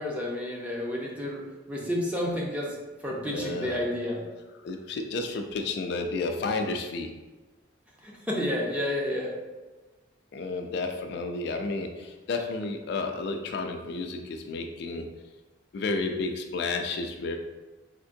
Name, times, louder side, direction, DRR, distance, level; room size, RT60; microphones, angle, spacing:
voice 1, 0.0-4.2 8.0-9.3, left 1 dB, 5° right, -3 dB, 0.5 m, -31 dB
voice 2, 3.2-3.8 4.6-7.1 10.3-15.1 15.7-17.4, left 3 dB, 60° left, 4 dB, 0.3 m, -31 dB
3.5 x 2.9 x 2.6 m, 1.2 s
head